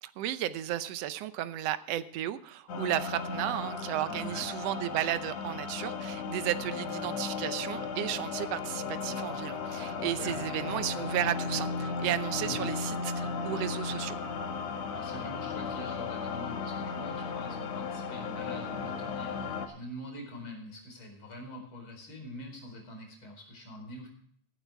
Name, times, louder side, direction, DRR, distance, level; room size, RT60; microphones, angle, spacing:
voice 1, 0.0-14.2, right 12 dB, 70° right, 12 dB, 1.6 m, -33 dB
sound 1, 2.7-19.7, left 5 dB, 65° left, 2.5 m, -35 dB
voice 2, 4.1-4.5 10.2-10.4 12.4-12.7 14.7-24.1, equal, 40° left, 3 dB, 5.2 m, -44 dB
17.0 x 11.5 x 3.4 m, 0.62 s
omnidirectional pair, 3.5 m